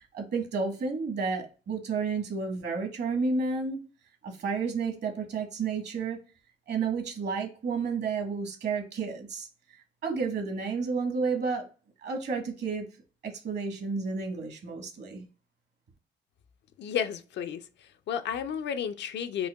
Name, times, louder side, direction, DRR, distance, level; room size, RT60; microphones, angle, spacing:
voice 1, 0.0-3.8 4.2-6.2 6.7-9.5 10.0-11.6 12.0-12.9 13.2-15.2, right 4 dB, 60° right, 1.3 m, -31 dB
voice 2, 16.8-19.5, left 8 dB, 65° left, 0.4 m, -32 dB
5.4 x 2.2 x 2.2 m
cardioid pair, 90°, 20 cm